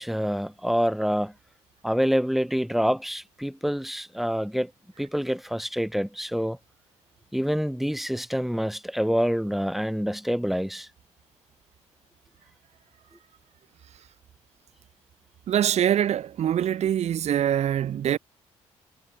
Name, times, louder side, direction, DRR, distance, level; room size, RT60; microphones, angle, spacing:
voice 1, 0.0-1.3 1.8-4.7 5.0-6.6 7.3-10.9, equal, ahead, 4.3 m, -26 dB
voice 2, 15.5-18.2, right 10 dB, 60° right, 0.8 m, -24 dB
supercardioid pair, 60°, 13 cm